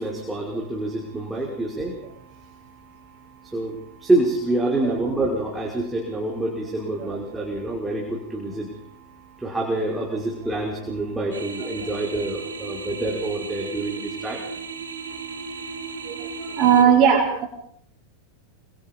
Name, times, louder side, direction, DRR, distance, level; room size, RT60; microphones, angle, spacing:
voice 1, 0.0-1.9 3.5-8.7 9.4-14.4 17.1-17.2, right 2 dB, 5° right, -1 dB, 5.6 m, -26 dB
sound 1, 11.3-16.8, right 4 dB, 70° right, 2.9 m, -35 dB
voice 2, 16.6-17.5, right 8 dB, 35° right, -3 dB, 5.8 m, -16 dB
27.0 x 26.5 x 5.5 m, 0.69 s
figure-of-eight pair, 90°, 0 cm